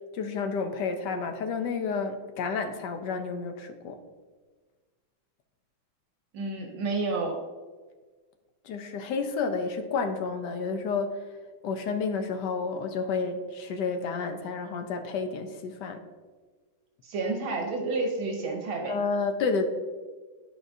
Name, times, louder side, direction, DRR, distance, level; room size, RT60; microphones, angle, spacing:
voice 1, 0.1-4.0 8.6-11.2 11.6-16.0 18.9-19.7, left 4 dB, 65° left, 6 dB, 1.2 m, -30 dB
voice 2, 6.3-7.3 17.0-18.9, right 3 dB, 85° right, 1 dB, 1.8 m, -30 dB
11.5 x 4.9 x 2.7 m, 1.4 s
omnidirectional pair, 2.2 m